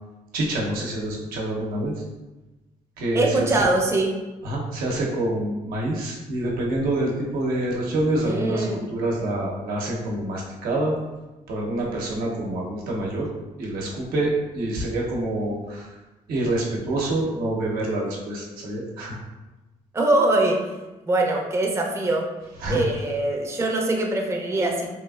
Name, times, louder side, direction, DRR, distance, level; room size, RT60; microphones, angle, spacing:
voice 1, 0.3-1.9 3.0-3.7 4.4-10.9 11.5-13.3 13.6-16.0 16.3-19.2 22.6-22.8, right 1 dB, 85° right, -2 dB, 0.7 m, -26 dB
voice 2, 3.1-4.1 8.2-8.8 19.9-20.6 21.1-22.3 22.7-24.9, right 2 dB, 20° right, 0 dB, 0.5 m, -22 dB
3.0 x 2.4 x 2.3 m, 1.1 s
cardioid pair, 90°, 15 cm